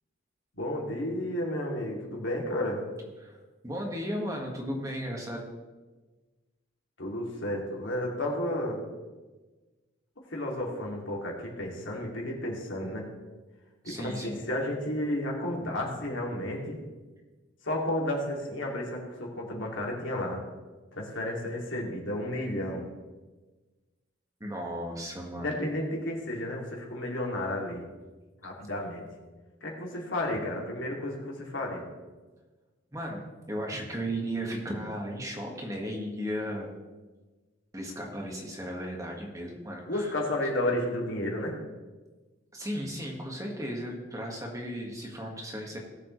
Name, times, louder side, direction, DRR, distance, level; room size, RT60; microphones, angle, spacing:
voice 1, 0.5-2.8 7.0-8.8 10.2-13.1 13.8-14.2 14.5-16.8 17.6-20.4 21.0-22.8 25.3-27.8 28.4-29.0 29.6-31.8 39.9-41.5, left 1 dB, 80° left, -2 dB, 2.6 m, -32 dB
voice 2, 3.6-5.4 13.8-14.4 24.4-25.6 32.9-36.7 37.7-40.1 42.5-45.8, equal, 15° right, 0 dB, 1.6 m, -35 dB
18.5 x 7.5 x 3.2 m, 1.3 s
head